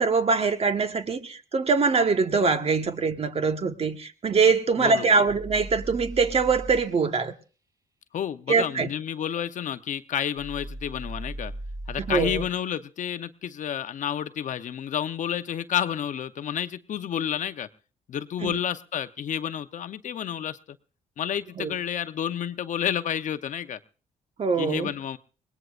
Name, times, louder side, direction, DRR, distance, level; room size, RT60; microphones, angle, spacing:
voice 1, 0.0-7.3 8.5-8.9 12.0-12.4 18.4-18.6 21.6-21.7 24.4-24.9, right 4 dB, 45° right, 1.4 m, -23 dB
voice 2, 4.8-5.2 8.1-11.5 11.9-17.7 18.1-20.6 21.2-23.8 24.6-25.2, left 9 dB, 60° left, 0.8 m, -30 dB
sound 1, 5.3-6.9 10.4-12.5, right 1 dB, 25° right, 3.3 m, -37 dB
22.5 x 19.0 x 2.5 m
cardioid pair, 70°, 14 cm